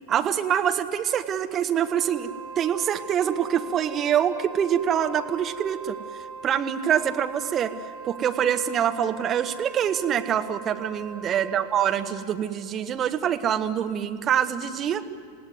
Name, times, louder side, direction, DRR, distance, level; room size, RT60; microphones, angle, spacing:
voice 1, 0.1-2.3 2.6-6.0 6.4-7.7 8.0-15.0, right 9 dB, 30° right, 7 dB, 1.5 m, -25 dB
Wind instrument woodwind instrument, 1.8-12.4, right 6 dB, 50° right, 3.9 m, -41 dB
28.5 x 17.5 x 9.6 m, 2.3 s
figure-of-eight pair, 90°, 0 cm